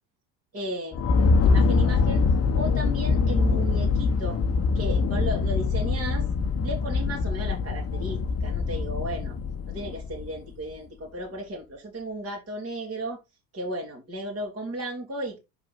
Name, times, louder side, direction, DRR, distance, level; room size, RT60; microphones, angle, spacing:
voice 1, 0.5-1.0 1.4-2.2 2.5-4.4 4.7-6.3 6.6-9.3 9.7-13.2 13.5-15.4, right 1 dB, 30° right, 2.8 m, -34 dB
sound 1, 0.9-10.5, left 4 dB, 30° left, 1.0 m, -24 dB
6.7 x 4.8 x 4.1 m
hypercardioid pair, 80°, 49 cm